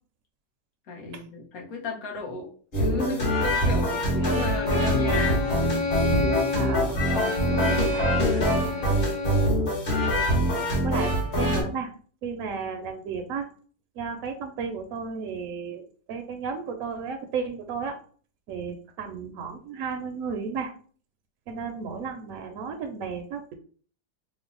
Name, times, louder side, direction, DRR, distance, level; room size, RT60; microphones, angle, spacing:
voice 1, 0.9-5.5 7.1-8.5, left 3 dB, 65° left, -1 dB, 1.2 m, -36 dB
sound 1, 2.7-11.6, equal, 40° left, 1.1 m, -24 dB
Bowed string instrument, 4.2-9.6, left 4 dB, 10° right, 0.5 m, -30 dB
voice 2, 6.5-8.2 8.5-8.7 10.8-11.9 12.2-13.5 14.0-18.0 18.5-20.7 21.5-23.5, right 5 dB, 70° right, 4 dB, 0.9 m, -34 dB
3.2 x 2.0 x 3.7 m, 0.43 s
omnidirectional pair, 1.7 m